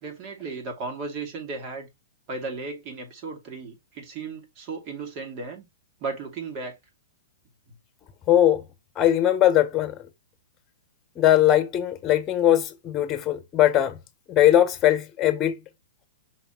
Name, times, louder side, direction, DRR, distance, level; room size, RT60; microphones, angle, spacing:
voice 1, 0.0-1.9 2.3-5.7 6.0-6.7, right 4 dB, 40° right, 2.7 m, -35 dB
voice 2, 8.3-8.6 9.0-9.9 11.2-14.0 14.3-15.6, left 12 dB, 25° left, 1.2 m, -20 dB
6.0 x 3.6 x 4.6 m
hypercardioid pair, 125°, 0 cm